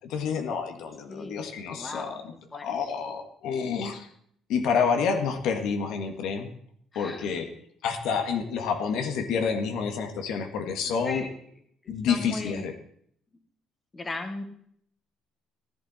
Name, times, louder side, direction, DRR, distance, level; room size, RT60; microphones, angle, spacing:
voice 1, 0.0-2.3 2.6-4.1 4.5-6.5 7.0-7.5 7.8-11.3 11.9-12.7, left 6 dB, 75° left, 6 dB, 1.9 m, -28 dB
voice 2, 1.1-1.4 1.7-2.2 2.5-2.6 6.9-7.4 10.8-11.3 11.8-12.7 13.9-14.4, left 2 dB, 20° left, 6 dB, 1.6 m, -37 dB
15.5 x 11.0 x 4.4 m, 0.66 s
cardioid pair, 130°, 0 cm